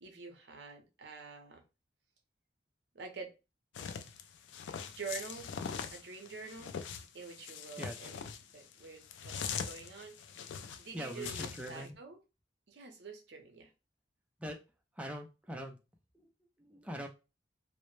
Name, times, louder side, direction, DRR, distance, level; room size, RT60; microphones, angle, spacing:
voice 1, 0.0-1.6 2.9-3.3 4.8-5.5 5.9-6.7 7.1-8.2 8.5-10.2 10.8-12.2 12.7-13.7, right 4 dB, 70° right, 0.6 m, -47 dB
sound 1, 3.7-11.8, left 6 dB, 90° left, 0.3 m, -42 dB
voice 2, 7.8-8.1 10.9-12.0 14.4-14.6 15.0-15.8 16.1-17.1, equal, 5° right, 0.4 m, -43 dB
2.0 x 2.0 x 3.0 m
head